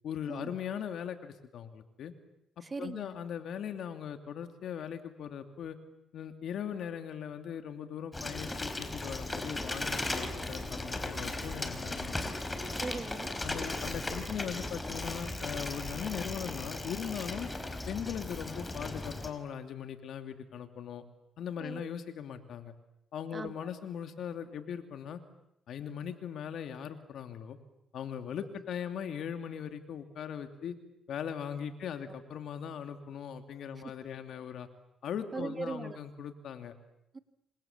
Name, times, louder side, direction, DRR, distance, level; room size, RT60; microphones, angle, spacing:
voice 1, 0.0-2.1 2.6-5.8 6.1-12.1 13.4-17.5 17.9-21.0 21.4-22.7 23.1-25.2 25.7-27.6 27.9-30.7 31.1-34.7 35.0-36.7, left 8 dB, 70° left, 7 dB, 2.8 m, -39 dB
voice 2, 2.6-3.2 12.7-13.4 21.6-21.9 23.3-23.7 32.0-32.2 33.8-33.9 35.3-36.0 37.1-37.2, right 4 dB, 30° right, 10 dB, 1.9 m, -40 dB
Bicycle, 8.1-19.3, left 2 dB, 15° left, 4.3 m, -37 dB
28.5 x 26.0 x 7.5 m, 0.82 s
cardioid pair, 90°, 0 cm